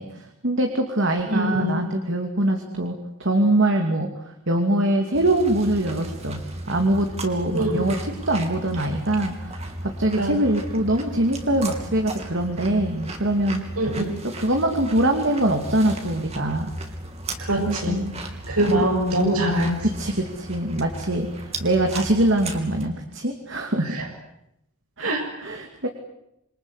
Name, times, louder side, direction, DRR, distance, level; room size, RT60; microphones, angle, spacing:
voice 1, 0.0-6.4 6.7-13.6 14.2-16.7 17.7-18.1 18.6-18.9 19.8-24.0 25.0-25.9, right 1 dB, 55° right, 3 dB, 2.6 m, -23 dB
voice 2, 1.3-1.8 7.5-7.8 10.2-10.3 13.8-14.1 17.4-18.0 18.5-19.8 25.0-25.2, right 1 dB, 85° right, 1 dB, 6.8 m, -23 dB
sound 1, 5.1-22.9, right 1 dB, 30° right, 3.1 m, -35 dB
27.5 x 24.5 x 8.2 m, 0.83 s
head